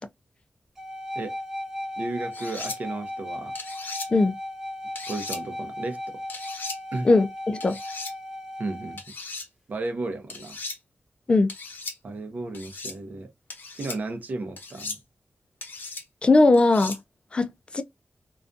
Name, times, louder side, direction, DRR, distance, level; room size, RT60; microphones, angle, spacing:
sound 1, 0.8-9.0, left 1 dB, 10° right, 0.7 m, -36 dB
voice 1, 2.0-3.5 5.1-6.2 6.9-7.1 8.6-9.0 9.7-10.6 12.0-13.3 13.8-15.0, right 2 dB, 60° right, 0.6 m, -33 dB
sound 2, 2.3-2.8 3.5-4.1 5.0-5.4 6.3-6.8 7.6-8.1 9.0-9.5 10.3-10.8 11.5-12.0 12.5-13.0 13.5-14.0 14.6-15.0 15.6-16.0 16.5-17.0, left 3 dB, 80° left, 0.8 m, -37 dB
voice 2, 7.0-7.8 11.3-11.5 16.2-17.0 17.3-17.8, left 2 dB, 30° left, 0.4 m, -19 dB
2.4 x 2.2 x 2.5 m
wide cardioid pair, 135°, 3 cm